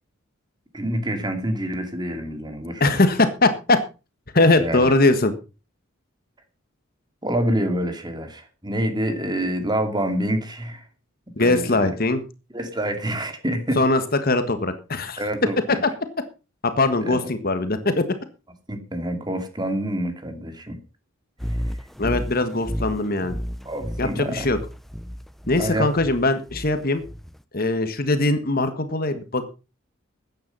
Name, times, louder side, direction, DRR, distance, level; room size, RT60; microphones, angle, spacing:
voice 1, 0.7-3.0 4.6-4.9 7.2-10.9 11.4-11.9 12.5-13.8 15.2-15.8 17.0-17.3 18.7-20.8 21.6-21.8 23.6-24.5 25.6-25.9, right 1 dB, 20° right, 7 dB, 2.5 m, -27 dB
voice 2, 2.8-3.8 4.3-5.3 11.4-12.2 13.8-15.2 16.8-18.0 22.0-23.4 24.0-24.6 25.5-27.0 27.5-29.4, left 2 dB, 45° left, 9 dB, 1.6 m, -21 dB
sound 1, 21.4-27.4, equal, ahead, 0.6 m, -32 dB
14.0 x 9.6 x 5.4 m, 0.33 s
head